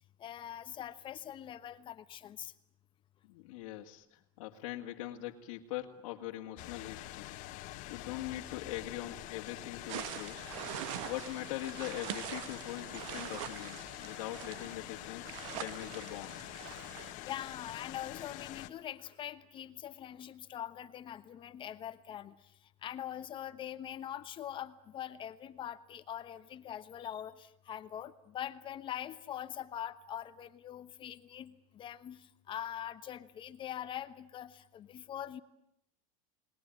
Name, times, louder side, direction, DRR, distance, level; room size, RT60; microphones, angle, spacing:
voice 1, 0.2-2.5 17.2-22.4 22.8-35.4, left 10 dB, 30° left, 12 dB, 1.1 m, -43 dB
voice 2, 3.2-7.3 7.9-10.5 11.1-16.4, left 14 dB, 75° left, -1 dB, 2.0 m, -42 dB
sound 1, 6.6-18.7, left 16 dB, 50° left, 1.6 m, -46 dB
sound 2, 9.9-17.1, right 13 dB, 70° right, 1.5 m, -44 dB
29.5 x 20.5 x 9.1 m, 0.77 s
supercardioid pair, 155°, 17 cm